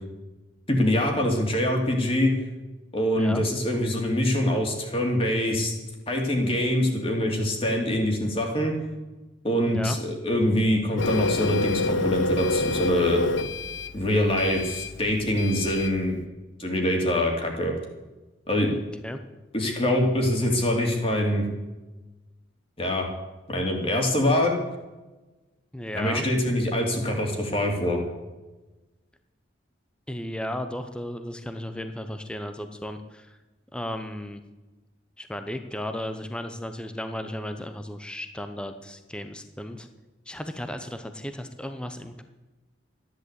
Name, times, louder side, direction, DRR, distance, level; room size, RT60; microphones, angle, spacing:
voice 1, 0.7-2.3 2.9-5.7 6.1-8.7 9.4-13.2 13.9-16.2 16.6-17.7 18.5-18.7 19.5-21.4 22.8-23.1 23.5-24.5 25.9-28.0, left 1 dB, 30° left, 1 dB, 3.0 m, -24 dB
voice 2, 9.7-10.0 18.7-19.2 25.7-26.2 30.1-33.4 33.7-34.4 35.2-39.9 40.3-42.2, left 1 dB, 5° left, 7 dB, 0.8 m, -35 dB
Printer, 11.0-16.0, left 3 dB, 75° left, 0.9 m, -28 dB
14.0 x 11.0 x 8.2 m, 1.1 s
head